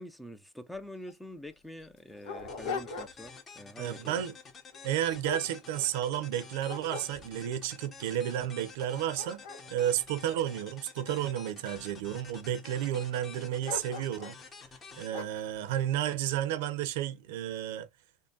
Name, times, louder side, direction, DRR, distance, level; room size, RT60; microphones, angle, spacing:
voice 1, 0.0-4.2, left 1 dB, ahead, 0.5 m, -45 dB
Dog, 0.7-0.8 1.1-1.2 1.8-3.4 3.8-4.1 4.7-6.2 6.6-7.6 8.2-8.3 8.7-11.1 11.7-12.3 13.6-14.4 15.1-15.5, left 4 dB, 70° left, 1.4 m, -41 dB
sound 1, 2.5-16.1, left 5 dB, 25° left, 0.9 m, -50 dB
voice 2, 3.8-4.4 4.8-9.4 9.7-14.4 15.0-17.9, right 11 dB, 75° right, 0.7 m, -32 dB
3.7 x 2.2 x 3.8 m
supercardioid pair, 135°, 0 cm